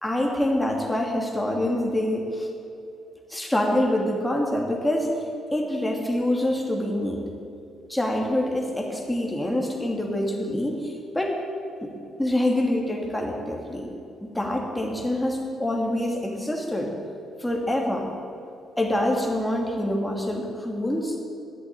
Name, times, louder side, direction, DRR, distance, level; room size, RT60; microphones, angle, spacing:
voice 1, 0.0-2.5 3.3-5.1 5.5-7.2 7.9-11.4 11.8-11.9 12.2-13.9 14.2-16.9 17.4-18.1 18.8-21.2, left 1 dB, 10° left, 0 dB, 2.7 m, -26 dB
11.5 x 7.9 x 8.8 m, 2.6 s
supercardioid pair, 70°, 0 cm